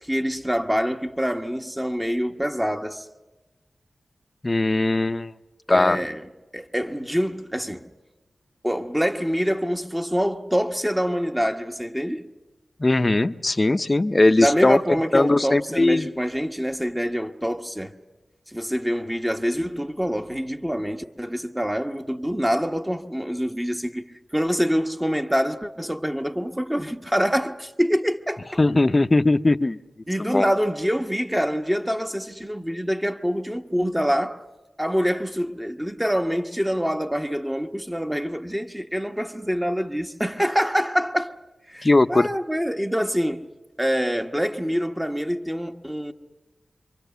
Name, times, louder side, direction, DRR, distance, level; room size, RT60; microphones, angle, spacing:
voice 1, 0.0-3.0 5.7-7.9 8.6-12.3 14.4-17.9 18.5-24.0 24.3-28.6 30.1-34.4 34.8-41.4 41.7-43.5 43.8-46.1, equal, 10° right, 1.2 m, -25 dB
voice 2, 4.4-5.3 5.7-6.0 12.8-14.8 15.1-16.1 28.6-29.8 30.2-30.5 41.8-42.3, left 2 dB, 35° left, 0.7 m, -19 dB
26.5 x 24.0 x 7.0 m
cardioid pair, 50°, 0 cm